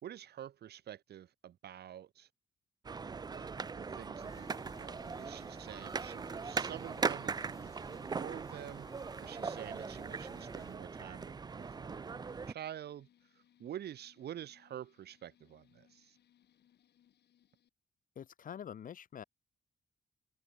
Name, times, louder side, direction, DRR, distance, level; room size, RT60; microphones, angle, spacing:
voice 1, 0.0-2.3 3.3-13.1 13.6-16.2, right 10 dB, 85° right, 2.1 m, -48 dB
sound 1, 2.8-12.5, right 5 dB, 25° right, 0.6 m, -40 dB
sound 2, 4.0-17.7, left 10 dB, 85° left, 5.8 m, -69 dB
sound 3, 4.2-10.8, left 3 dB, 20° left, 4.1 m, -59 dB
voice 2, 18.1-19.2, left 8 dB, 55° left, 1.5 m, -46 dB
wide cardioid pair, 160°, 17 cm